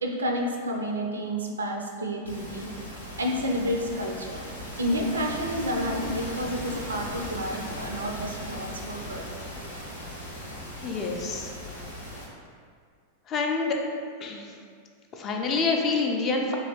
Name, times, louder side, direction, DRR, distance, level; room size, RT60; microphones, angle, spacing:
voice 1, 0.0-2.7 3.2-4.4 4.8-9.2, equal, 70° right, 1 dB, 0.4 m, -30 dB
sound 1, 2.2-12.2, equal, 85° left, 0.6 m, -38 dB
voice 2, 10.8-11.5 13.3-13.8 14.2-14.5 15.1-16.6, left 4 dB, 30° left, 1 dB, 0.4 m, -27 dB
3.0 x 2.7 x 2.9 m, 2.1 s
figure-of-eight pair, 90°, 0 cm